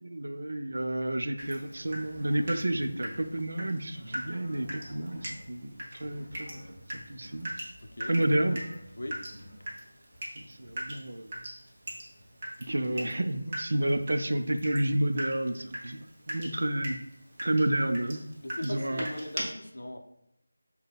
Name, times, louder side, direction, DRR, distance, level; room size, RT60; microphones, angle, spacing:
voice 1, 0.0-7.5 8.1-8.6 10.4-11.3 12.7-17.0 17.4-18.2 18.6-19.0, right 1 dB, 70° right, 0.4 m, -30 dB
Water tap faucet / Drip, 1.4-19.4, right 1 dB, 25° right, 0.7 m, -42 dB
sound 1, 1.8-3.4 3.9-5.5 6.0-7.6 8.1-9.7, equal, 15° left, 1.0 m, -50 dB
voice 2, 7.8-8.1 9.0-9.3 9.6-9.7 10.3-11.0 12.0-12.3 18.4-20.0, left 1 dB, 70° left, 0.5 m, -41 dB
4.1 x 2.2 x 3.5 m
figure-of-eight pair, 175°, 0 cm